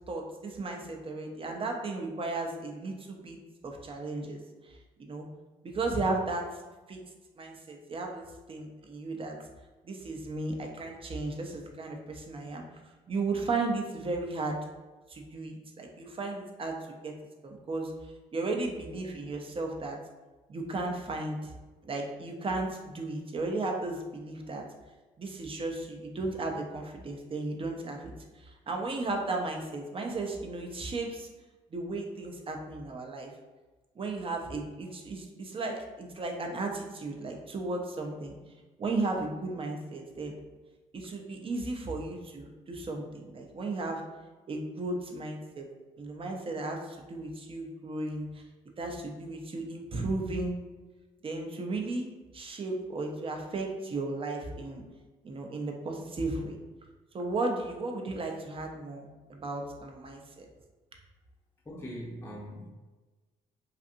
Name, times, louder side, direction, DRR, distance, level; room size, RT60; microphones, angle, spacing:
voice 1, 0.1-3.4 3.6-4.4 5.0-5.3 5.6-6.6 6.9-7.0 7.4-9.4 9.8-12.6 13.1-14.6 15.1-17.1 17.4-17.9 18.3-20.0 20.5-21.5 21.8-24.6 25.2-31.3 31.7-33.3 34.0-38.3 38.8-40.3 40.9-44.0 44.5-45.7 46.0-48.4 48.8-50.5 51.2-52.1 52.3-54.8 55.2-56.6 57.1-60.5, right 2 dB, 35° right, 2 dB, 0.5 m, -35 dB
voice 2, 61.7-62.7, equal, 15° left, -4 dB, 0.6 m, -41 dB
2.6 x 2.4 x 2.5 m, 1.2 s
supercardioid pair, 65°, 16 cm